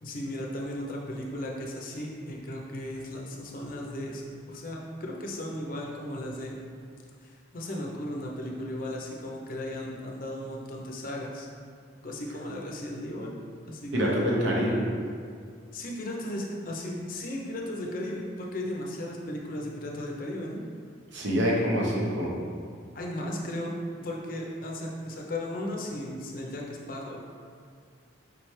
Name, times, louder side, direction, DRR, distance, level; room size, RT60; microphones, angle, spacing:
voice 1, 0.0-4.2 4.5-6.6 7.2-11.5 12.0-13.3 13.7-14.3 15.7-20.6 22.9-23.8 24.0-27.2, left 1 dB, 50° left, -1 dB, 0.6 m, -36 dB
voice 2, 13.9-14.8 21.1-22.3, equal, 90° right, -3 dB, 0.9 m, -25 dB
5.0 x 3.2 x 3.1 m, 2.2 s
head